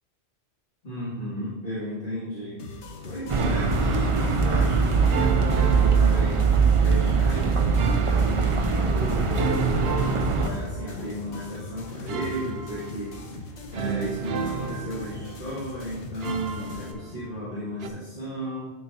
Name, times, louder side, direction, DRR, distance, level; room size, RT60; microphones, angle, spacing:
voice 1, 0.8-6.4 6.8-18.7, equal, 55° left, -11 dB, 2.6 m, -34 dB
sound 1, 2.6-16.9, left 3 dB, 85° left, 1.2 m, -41 dB
sound 2, 3.3-10.5, right 5 dB, 40° right, 0.4 m, -22 dB
sound 3, 3.4-4.2 5.1-6.8 7.8-8.8 9.3-11.1 12.1-13.3 13.7-15.6 16.2-17.5 17.8-17.9, right 6 dB, 65° right, 0.8 m, -33 dB
11.5 x 4.6 x 2.7 m, 1.3 s
omnidirectional pair, 1.1 m